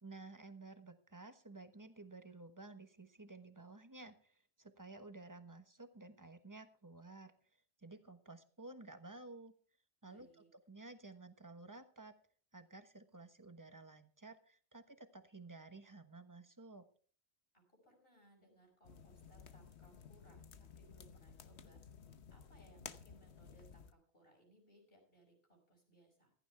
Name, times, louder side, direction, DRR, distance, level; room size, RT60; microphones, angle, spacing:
voice 1, 0.0-7.3 7.8-9.5 10.0-10.3 10.5-12.2 12.5-16.9, right 2 dB, 20° right, 9 dB, 1.2 m, -54 dB
voice 2, 10.0-10.5 17.5-21.8 22.3-26.3, right 1 dB, 55° left, 2 dB, 6.2 m, -67 dB
sound 1, 18.8-23.9, left 6 dB, 75° left, 1.2 m, -55 dB
15.5 x 14.5 x 3.5 m, 0.42 s
omnidirectional pair, 1.1 m